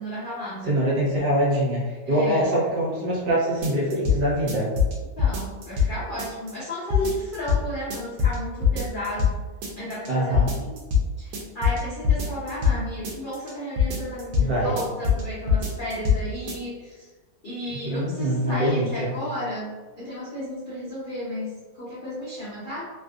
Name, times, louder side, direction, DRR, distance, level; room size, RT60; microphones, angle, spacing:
voice 1, 0.0-0.8 2.0-2.5 5.2-9.4 9.8-10.8 11.2-17.1 17.4-22.8, left 1 dB, 60° left, -9 dB, 0.5 m, -33 dB
voice 2, 0.6-4.7 10.1-10.5 14.4-14.7 17.8-19.1, right 1 dB, 65° right, -6 dB, 1.6 m, -24 dB
sound 1, 3.6-4.2 4.5-5.9 6.2-6.7 6.9-7.6 7.9-8.4 8.6-9.3 9.6-10.1 10.3-11.0 11.3-12.8 13.0-13.5 13.8-14.5 14.8-15.2 15.5-16.2 16.5-16.6, left 6 dB, 85° right, 1.5 m, -22 dB
3.4 x 2.5 x 2.4 m, 1.3 s
omnidirectional pair, 2.1 m